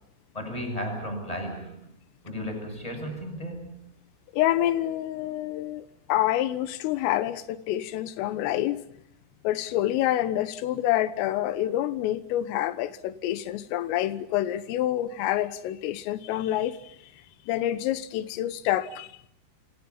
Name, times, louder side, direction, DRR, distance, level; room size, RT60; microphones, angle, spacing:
voice 1, 0.3-1.9 2.2-3.9, equal, 5° left, 7.2 m, -34 dB
voice 2, 4.3-8.8 9.5-17.0 17.5-19.1, left 13 dB, 90° left, 3.8 m, -27 dB
28.5 x 26.5 x 5.6 m
omnidirectional pair, 5.7 m